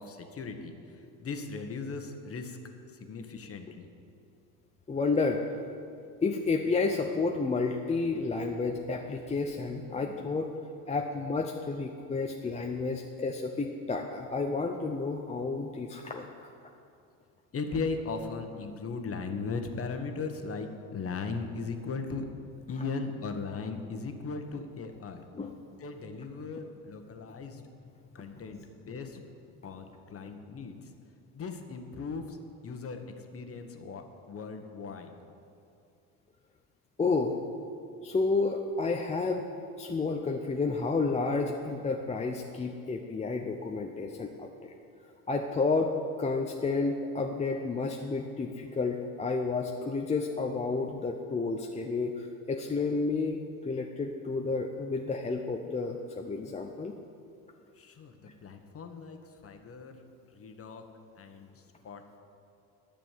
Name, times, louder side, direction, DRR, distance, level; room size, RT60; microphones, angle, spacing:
voice 1, 0.0-2.6 3.0-3.9 17.5-22.3 22.7-25.2 25.8-27.6 28.1-29.2 29.6-30.9 31.3-32.4 32.6-33.0 33.3-35.1 57.8-60.0 60.3-60.9 61.2-61.5 61.8-62.2, left 4 dB, 30° left, 6 dB, 1.3 m, -38 dB
voice 2, 4.9-5.6 6.2-10.5 10.9-16.3 25.3-25.5 37.0-37.4 38.0-39.4 39.8-44.7 45.3-56.9, left 3 dB, 15° left, 2 dB, 0.7 m, -31 dB
11.0 x 6.9 x 7.4 m, 2.5 s
hypercardioid pair, 75°, 45 cm